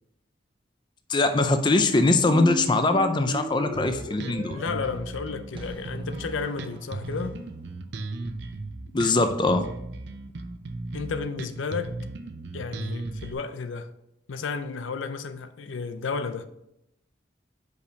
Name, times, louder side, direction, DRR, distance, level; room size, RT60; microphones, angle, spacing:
voice 1, 1.1-4.6 8.9-9.7, left 2 dB, 25° left, 0.4 m, -22 dB
Squeak, 1.3-7.2, right 1 dB, 25° right, 0.7 m, -38 dB
Bass guitar, 3.7-13.3, right 3 dB, 65° right, 0.5 m, -36 dB
voice 2, 4.5-7.4 10.9-11.9 12.5-13.9 14.3-16.5, left 5 dB, 90° left, 0.5 m, -32 dB
5.3 x 5.0 x 5.1 m
head